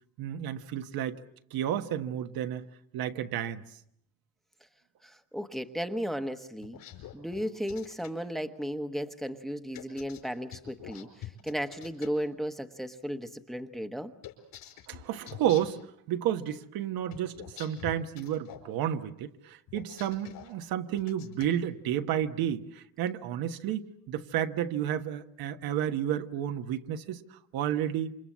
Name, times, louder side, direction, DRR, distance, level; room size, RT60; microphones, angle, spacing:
voice 1, 0.2-1.2 1.5-2.6 2.9-3.6 14.9-15.8 16.1-28.1, right 10 dB, 85° right, 7 dB, 1.5 m, -31 dB
voice 2, 5.0-6.8 7.1-14.1, equal, ahead, 7 dB, 1.0 m, -35 dB
sound 1, 6.6-8.1 9.7-12.1 14.2-15.8 17.1-18.7 19.7-20.5 21.0-21.5, left 11 dB, 75° left, 5.1 m, -46 dB
28.5 x 26.5 x 7.4 m, 0.74 s
cardioid pair, 155°, 35 cm